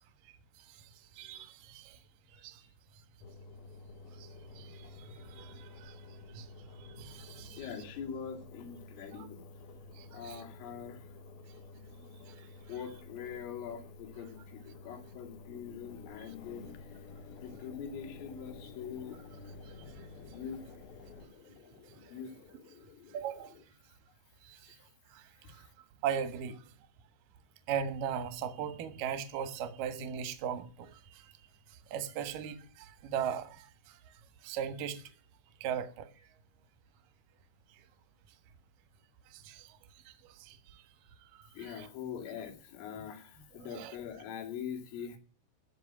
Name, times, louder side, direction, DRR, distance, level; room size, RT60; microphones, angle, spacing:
voice 1, 1.2-2.0 2.3-2.7 4.2-6.5 6.7-7.7 9.1-9.3 9.9-10.4 12.3-12.5 23.1-23.5 24.4-24.8 25.1-25.7 26.0-26.6 27.7-31.3 31.7-34.0 34.4-35.0 35.6-36.1 39.3-39.7 40.1-40.8 41.3-41.9 43.7-44.0, right 8 dB, 65° right, 2.3 m, -39 dB
Engine, 3.2-21.3, left 3 dB, 70° left, 2.5 m, -51 dB
voice 2, 7.4-9.4 10.1-11.1 11.7-12.2 12.7-17.0 17.4-19.2 20.3-20.6 22.1-22.3 24.7-24.8 25.4-25.7 41.5-45.2, left 7 dB, 90° left, 5.0 m, -43 dB
sound 1, 17.3-23.6, left 4 dB, 40° left, 3.1 m, -58 dB
15.5 x 5.5 x 9.7 m
omnidirectional pair, 5.7 m